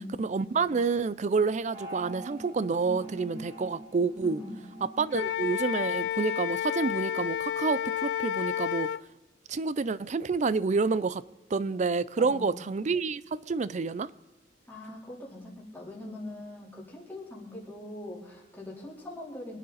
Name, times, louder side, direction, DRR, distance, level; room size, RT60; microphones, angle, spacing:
voice 1, 0.2-4.4 5.0-8.9 9.5-11.2 11.5-14.1, right 4 dB, 40° right, 0.4 m, -28 dB
sound 1, 1.6-6.3, right 1 dB, 70° right, 4.0 m, -44 dB
voice 2, 4.2-4.6 12.2-12.6 14.7-19.6, left 1 dB, 10° left, 3.9 m, -42 dB
Wind instrument woodwind instrument, 5.1-9.0, left 10 dB, 70° left, 0.3 m, -31 dB
24.5 x 9.2 x 4.2 m
head